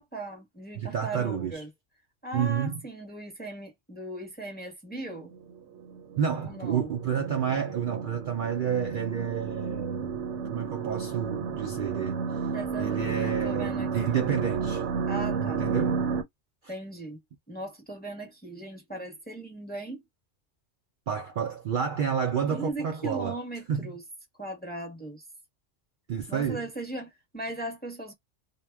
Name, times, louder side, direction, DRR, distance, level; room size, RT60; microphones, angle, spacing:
voice 1, 0.0-1.7 2.2-5.3 6.4-6.9 12.5-14.2 15.1-15.7 16.7-17.2 17.5-20.0 22.5-24.0 24.4-25.2 26.3-28.1, right 2 dB, 10° left, 0.7 m, -38 dB
voice 2, 0.8-1.6 2.3-2.8 6.2-10.2 10.5-12.2 12.8-14.8 15.4-16.0 21.1-23.4 23.7-23.9 26.1-26.6, right 8 dB, 60° right, 0.6 m, -30 dB
sound 1, 5.9-16.2, right 5 dB, 80° right, 1.0 m, -32 dB
2.2 x 2.0 x 3.2 m
omnidirectional pair, 1.2 m